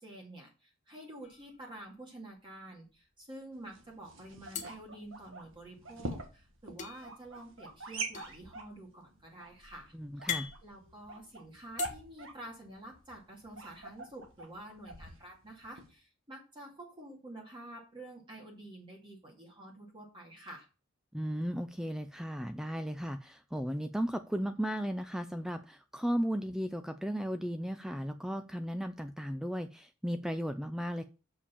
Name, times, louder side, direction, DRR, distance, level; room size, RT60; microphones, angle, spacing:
voice 1, 0.0-10.3 10.6-20.7, right 1 dB, 25° right, 2.2 m, -49 dB
Metal Bottle, 1.2-2.1 2.5-2.6 2.9-3.6 4.5-5.8 6.8-11.9, left 8 dB, 35° left, 1.2 m, -43 dB
sound 1, 3.5-15.9, right 2 dB, 65° right, 1.8 m, -45 dB
voice 2, 9.9-10.5 21.1-31.0, equal, ahead, 0.4 m, -35 dB
6.9 x 5.1 x 6.9 m
head